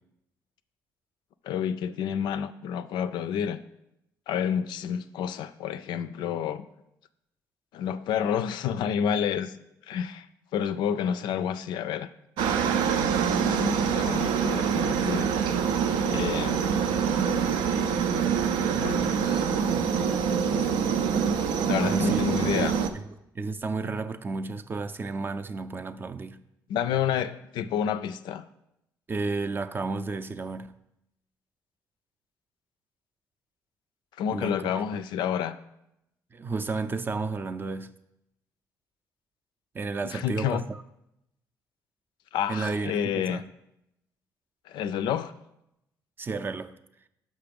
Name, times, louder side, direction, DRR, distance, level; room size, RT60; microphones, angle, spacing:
voice 1, 1.4-3.6 4.3-6.6 7.7-9.6 9.8-10.3 10.5-12.1 13.1-15.3 16.1-16.6 18.8-20.2 20.5-20.8 21.7-22.8 26.7-28.5 34.2-35.6 40.0-40.6 42.3-43.4 44.7-45.3, left 8 dB, 80° left, 0.4 m, -30 dB
Aircraft, 12.4-22.9, right 7 dB, 90° right, 0.5 m, -25 dB
voice 2, 21.7-22.7 23.4-26.4 29.1-30.7 34.3-34.8 36.3-37.9 39.7-40.6 42.5-43.4 46.2-46.7, right 3 dB, 30° right, 0.4 m, -32 dB
5.8 x 5.3 x 5.2 m
cardioid pair, 90°, 8 cm